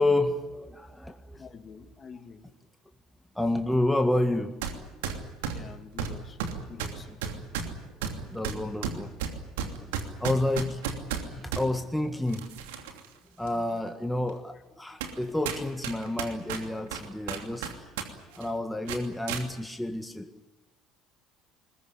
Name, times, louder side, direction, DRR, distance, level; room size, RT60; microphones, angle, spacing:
voice 1, 0.0-1.4 3.4-4.5 7.3-7.5 8.3-9.1 9.6-10.8 11.1-12.4 13.4-17.9 18.3-20.5, left 1 dB, 5° left, 5 dB, 1.8 m, -29 dB
voice 2, 1.3-2.5 5.5-7.2, left 5 dB, 35° left, 7 dB, 2.5 m, -47 dB
sound 1, 4.6-4.8 5.0-11.7 12.3-13.1 13.5-13.6 14.3-14.4 15.0-15.2 15.5-18.1 18.3-18.5 18.9-19.4, right 7 dB, 75° right, 2.9 m, -33 dB
21.5 x 20.5 x 9.9 m, 1.1 s
hypercardioid pair, 65°, 0 cm